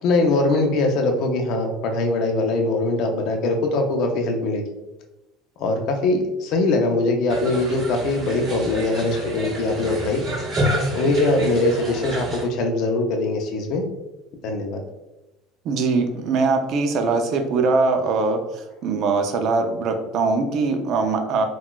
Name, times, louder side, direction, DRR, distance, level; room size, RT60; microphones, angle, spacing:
voice 1, 0.0-4.6 5.6-10.2 10.9-13.9 14.4-14.8, left 2 dB, 50° left, 3 dB, 0.4 m, -22 dB
sound 1, 7.3-12.4, right 1 dB, 25° right, 1.4 m, -28 dB
voice 2, 15.6-21.4, right 4 dB, 45° right, 5 dB, 0.4 m, -22 dB
3.8 x 2.3 x 2.2 m, 0.99 s
cardioid pair, 155°, 0 cm